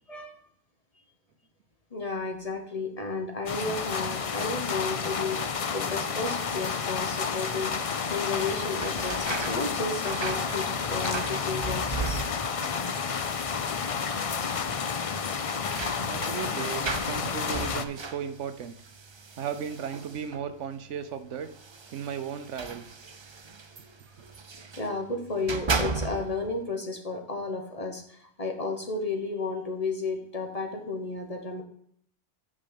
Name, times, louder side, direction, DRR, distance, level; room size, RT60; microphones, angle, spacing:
voice 1, 1.9-12.3 24.8-31.6, left 3 dB, 30° left, 3 dB, 1.2 m, -33 dB
sound 1, 3.5-17.8, left 6 dB, 50° left, 0.4 m, -30 dB
sound 2, 8.3-12.7 13.0-13.6 13.9-14.0 15.1-20.5 21.4-24.9 25.3-26.5, right 4 dB, 35° right, 0.4 m, -36 dB
voice 2, 16.0-18.7 19.4-21.5 21.9-23.0, right 7 dB, 75° right, 11 dB, 1.0 m, -35 dB
8.7 x 5.5 x 5.2 m, 0.65 s
omnidirectional pair, 1.3 m